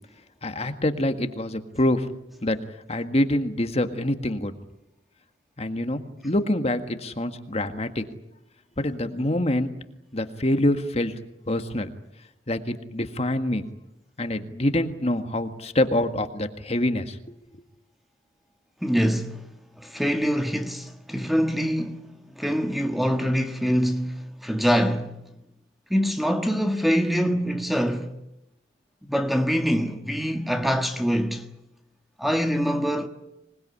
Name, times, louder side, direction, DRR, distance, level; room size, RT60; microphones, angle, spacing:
voice 1, 0.4-2.1 2.4-2.6 2.9-4.5 5.6-8.0 8.8-9.7 10.1-11.2 11.5-11.9 12.5-13.7 14.2-17.2, left 1 dB, 35° left, 1.7 m, -25 dB
voice 2, 18.8-19.4 19.8-25.2 25.9-28.1 29.1-31.5 32.2-33.1, equal, ahead, 1.5 m, -24 dB
26.0 x 20.5 x 9.8 m
head